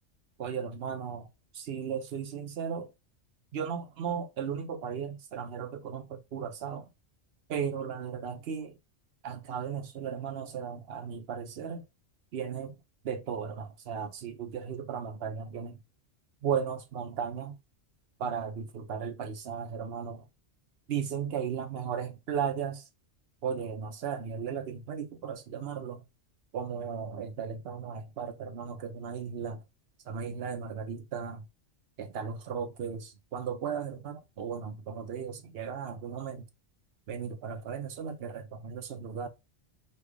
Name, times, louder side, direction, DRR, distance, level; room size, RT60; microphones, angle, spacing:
voice 1, 0.4-1.3 1.5-2.9 3.5-6.9 7.5-8.8 9.2-11.8 12.3-12.8 13.0-15.8 16.4-17.6 18.2-20.3 20.9-22.9 23.4-26.0 26.5-29.6 30.0-31.5 32.0-36.4 37.1-39.3, right 7 dB, 60° right, 0.8 m, -36 dB
3.3 x 2.3 x 3.3 m
omnidirectional pair, 1.2 m